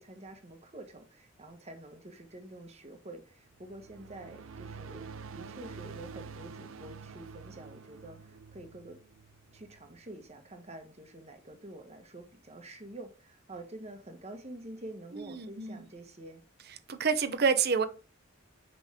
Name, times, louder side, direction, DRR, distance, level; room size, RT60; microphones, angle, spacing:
voice 1, 0.0-9.0 9.5-16.4, right 1 dB, 30° right, 1.3 m, -47 dB
sound 1, 3.5-10.1, right 5 dB, 75° right, 0.5 m, -47 dB
voice 2, 15.1-15.9 16.9-17.9, right 5 dB, 50° right, 0.7 m, -28 dB
6.5 x 5.4 x 3.5 m
head